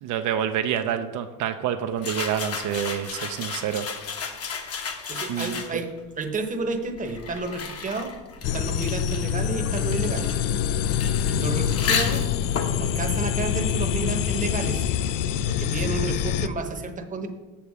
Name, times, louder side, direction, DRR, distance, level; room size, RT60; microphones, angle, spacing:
voice 1, 0.0-3.9 5.3-5.6, right 9 dB, 70° right, 7 dB, 0.6 m, -27 dB
sound 1, 2.0-6.0 6.8-14.2, left 6 dB, 50° left, 1.0 m, -33 dB
voice 2, 5.1-5.9 6.2-8.1 8.5-10.3 11.3-12.3 12.8-14.8 15.5-17.3, right 3 dB, 25° right, 5 dB, 0.9 m, -31 dB
sound 2, 8.4-16.5, left 9 dB, 75° left, 0.5 m, -25 dB
7.2 x 6.8 x 4.8 m, 1.2 s
cardioid pair, 130°, 32 cm